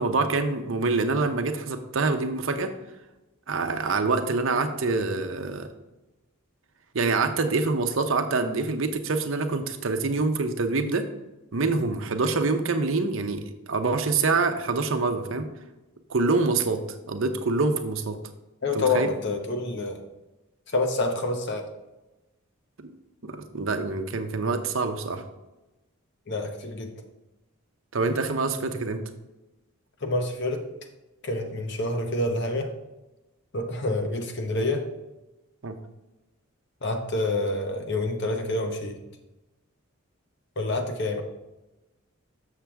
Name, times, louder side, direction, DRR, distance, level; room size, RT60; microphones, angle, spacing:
voice 1, 0.0-2.7 3.5-5.7 6.9-11.1 11.5-15.5 16.1-16.8 17.1-18.2 18.7-19.1 22.8-22.9 23.2-25.2 27.9-29.0 35.6-35.8, right 3 dB, 60° right, 7 dB, 0.8 m, -26 dB
voice 2, 18.6-20.0 20.7-21.7 26.3-26.9 30.0-30.7 31.2-32.7 33.5-34.9 36.8-39.0 40.6-41.2, left 2 dB, 50° left, 4 dB, 1.0 m, -27 dB
7.5 x 6.6 x 3.4 m, 1.0 s
head